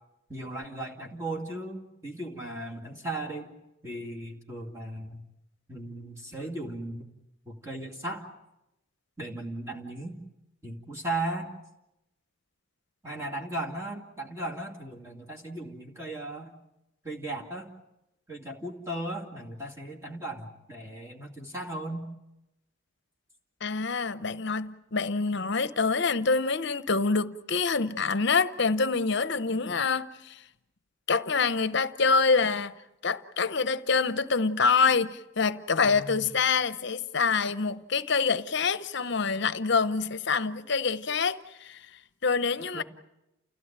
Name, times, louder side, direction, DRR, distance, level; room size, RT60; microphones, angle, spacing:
voice 1, 0.3-3.5 3.8-5.2 5.7-7.1 7.5-8.3 9.2-10.2 10.6-11.5 13.0-16.5 17.0-17.7 18.3-22.1 35.9-36.3 42.7-42.8, right 1 dB, 15° right, 2.4 m, -36 dB
voice 2, 23.6-30.4 31.1-32.7 33.0-41.8 42.2-42.8, left 4 dB, 55° left, 0.8 m, -26 dB
29.5 x 16.0 x 8.9 m
head